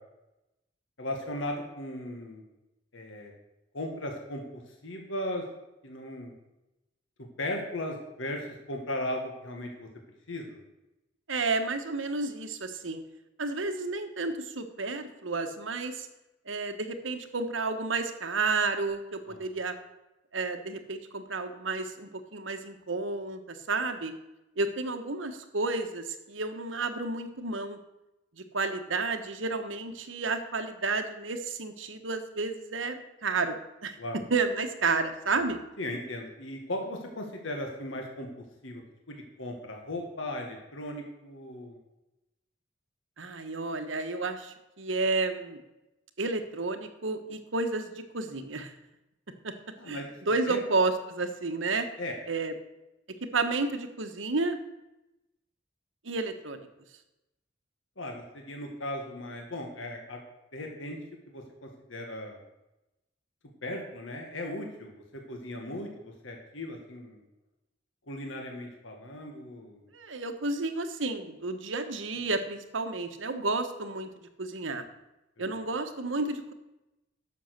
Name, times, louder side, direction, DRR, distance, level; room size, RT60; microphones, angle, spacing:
voice 1, 1.0-2.4 2.9-3.3 3.7-5.4 5.8-6.3 7.4-9.9 10.3-10.6 19.3-19.5 34.0-34.2 35.8-38.8 39.1-41.8 49.8-50.2 50.4-50.6 52.0-52.1 58.0-60.2 60.5-61.0 61.3-62.4 63.6-67.2 68.1-69.8 75.4-75.5, left 1 dB, 85° left, 2 dB, 1.8 m, -37 dB
voice 2, 11.3-13.0 13.4-16.1 16.5-19.8 20.3-24.1 24.6-27.8 28.5-33.9 34.3-35.6 43.2-45.6 46.2-48.7 49.4-49.5 49.9-50.0 50.3-51.9 52.3-52.5 53.3-54.6 56.0-56.7 69.9-74.1 74.4-74.8 75.4-76.5, right 3 dB, 80° right, 7 dB, 1.2 m, -31 dB
11.0 x 7.0 x 6.6 m, 0.95 s
head